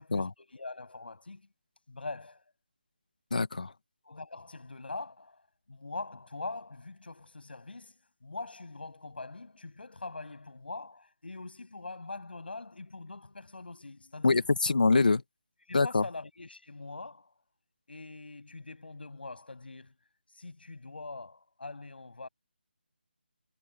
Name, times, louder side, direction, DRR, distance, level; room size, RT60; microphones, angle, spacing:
voice 1, 0.0-1.5 1.9-2.4 4.0-5.4 5.7-14.5 15.7-17.3 17.9-19.9 20.3-22.3, left 3 dB, 70° left, 7.9 m, -43 dB
voice 2, 3.3-3.7 14.2-15.2 15.7-16.0, left 3 dB, 50° left, 1.6 m, -25 dB
figure-of-eight pair, 180°, 6 cm